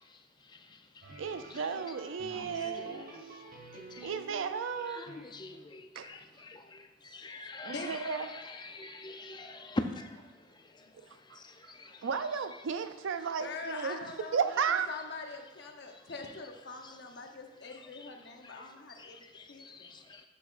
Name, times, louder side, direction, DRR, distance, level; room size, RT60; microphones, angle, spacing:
sound 1, 1.0-5.6, right 2 dB, 50° right, 0.9 m, -49 dB
voice 1, 1.2-3.1 4.0-5.1 5.9-6.2 7.6-8.3 11.1-11.8 12.0-14.0 14.3-14.9, right 6 dB, 85° right, 0.5 m, -34 dB
voice 2, 3.7-4.1 5.0-7.7 8.6-10.1 11.4-12.0 19.0-20.3, left 2 dB, 25° left, 0.5 m, -42 dB
voice 3, 13.4-14.4 14.7-20.0, left 4 dB, 60° left, 0.8 m, -44 dB
11.0 x 5.1 x 2.5 m
head